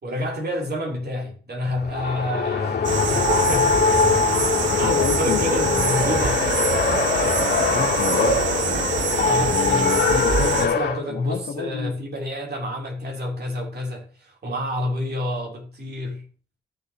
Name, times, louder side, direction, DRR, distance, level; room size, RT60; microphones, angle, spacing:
voice 1, 0.0-4.5 4.7-6.4 9.2-16.3, left 1 dB, 55° right, 3.4 m, -29 dB
Race car auto racing, 1.8-11.0, left 5 dB, 60° left, 2.0 m, -22 dB
sound 1, 2.8-10.7, right 6 dB, 70° right, 2.0 m, -26 dB
voice 2, 4.7-6.8 7.2-8.4 9.4-10.8 11.1-11.9, left 7 dB, 80° left, 1.4 m, -30 dB
13.5 x 6.7 x 3.0 m
supercardioid pair, 50°, 20 cm